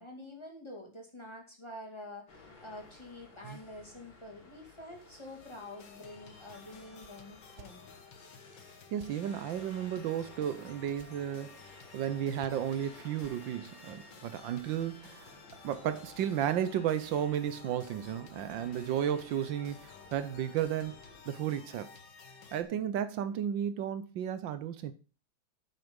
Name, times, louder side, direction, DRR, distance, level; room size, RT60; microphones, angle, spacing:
voice 1, 0.0-7.8, left 1 dB, 15° left, 2.2 m, -47 dB
sound 1, 2.3-21.2, left 3 dB, 85° left, 3.4 m, -57 dB
sound 2, 5.4-22.6, left 5 dB, 70° left, 1.9 m, -53 dB
sound 3, 7.0-7.1 7.5-7.7 9.0-9.1 10.9-11.1 12.4-12.8 13.2-13.4, right 8 dB, 55° right, 1.1 m, -53 dB
voice 2, 8.9-11.6 11.9-15.3 15.6-20.9 21.3-21.9 22.5-24.9, right 10 dB, 80° right, 1.5 m, -33 dB
9.1 x 6.5 x 5.2 m
omnidirectional pair, 2.1 m